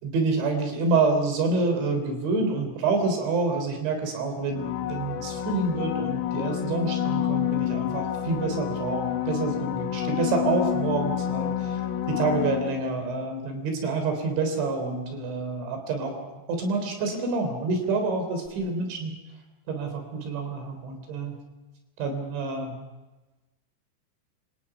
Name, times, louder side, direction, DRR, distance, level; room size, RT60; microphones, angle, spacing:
voice 1, 0.0-11.8 12.1-19.2 19.7-21.4 22.0-22.8, right 3 dB, 85° right, 5 dB, 6.1 m, -27 dB
sound 1, 4.5-13.1 18.5-18.6, left 11 dB, 65° left, 2.2 m, -29 dB
30.0 x 25.0 x 5.9 m, 1.1 s
omnidirectional pair, 5.1 m